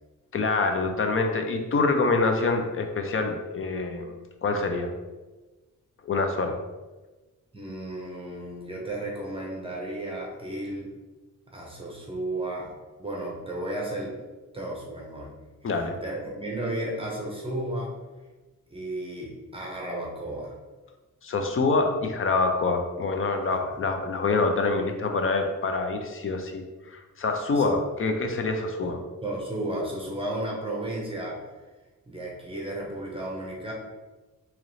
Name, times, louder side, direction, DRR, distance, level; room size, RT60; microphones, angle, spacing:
voice 1, 0.3-4.1 4.4-4.9 6.0-6.6 15.6-16.0 21.2-26.6 26.9-29.0, left 3 dB, 40° left, 5 dB, 0.5 m, -26 dB
voice 2, 7.5-10.9 11.5-12.7 13.0-14.2 14.5-15.3 15.6-17.9 18.7-20.5 27.5-27.7 28.8-28.9 29.2-31.4 32.1-33.7, right 1 dB, 15° right, -3 dB, 0.8 m, -33 dB
3.7 x 3.0 x 3.1 m, 1.2 s
cardioid pair, 105°, 32 cm